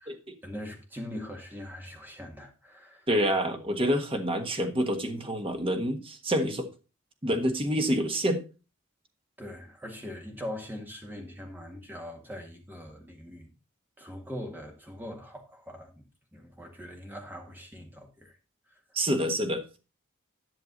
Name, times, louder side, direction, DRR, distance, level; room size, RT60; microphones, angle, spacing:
voice 1, 0.4-3.1 9.4-13.5 14.0-16.1 16.3-18.4 18.7-18.8, left 1 dB, 10° right, 1.8 m, -42 dB
voice 2, 3.1-6.7 7.2-8.4 18.9-19.6, equal, 25° right, 1.3 m, -27 dB
11.0 x 6.7 x 4.0 m
head